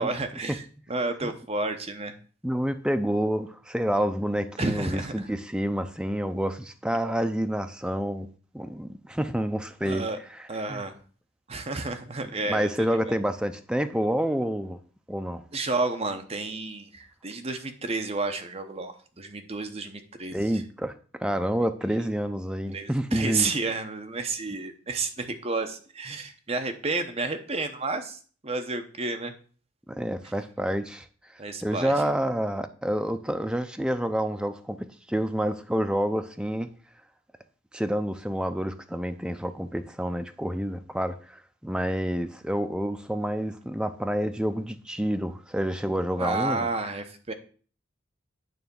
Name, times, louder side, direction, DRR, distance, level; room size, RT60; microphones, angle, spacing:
voice 1, 0.0-2.1 4.6-5.3 9.8-10.2 10.5-11.0 11.5-13.1 15.5-20.6 22.7-29.3 31.4-31.9 46.2-47.3, right 3 dB, 30° right, 0.9 m, -31 dB
voice 2, 2.4-8.3 8.5-10.1 10.7-10.8 12.5-14.8 15.1-15.4 20.3-20.9 21.2-23.5 29.9-31.1 31.6-36.7 37.7-46.7, equal, 5° right, 0.5 m, -28 dB
9.3 x 3.5 x 6.9 m
head